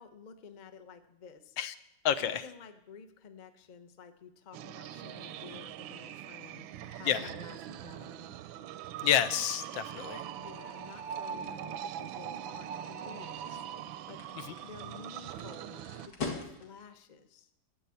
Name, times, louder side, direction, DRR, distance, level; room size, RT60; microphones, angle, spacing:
voice 1, 0.0-1.6 2.2-8.3 10.3-13.7 14.1-14.2 14.6-17.5, left 6 dB, 40° left, 8 dB, 0.6 m, -51 dB
voice 2, 2.0-2.4 7.0-7.3 9.0-10.2 14.4-14.5, left 9 dB, 75° left, 12 dB, 1.4 m, -29 dB
sound 1, 4.5-16.1, right 9 dB, 80° right, 1.4 m, -42 dB
sound 2, 6.5-17.0, left 4 dB, 60° left, 2.4 m, -47 dB
12.5 x 8.2 x 8.3 m, 0.84 s
omnidirectional pair, 2.1 m